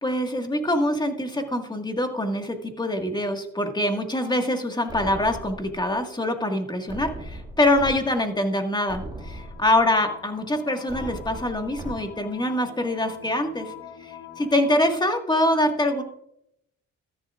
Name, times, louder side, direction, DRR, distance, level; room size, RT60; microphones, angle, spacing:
voice 1, 0.0-13.7 14.0-16.0, left 1 dB, 15° left, 4 dB, 1.8 m, -24 dB
sound 1, 4.9-5.9 6.9-7.9 8.4-8.5 8.9-9.9 10.9-11.9, right 1 dB, 15° right, 2.3 m, -38 dB
sound 2, 9.0-14.9, left 10 dB, 90° left, 2.1 m, -44 dB
13.5 x 10.5 x 2.5 m, 0.74 s
cardioid pair, 90°, 30 cm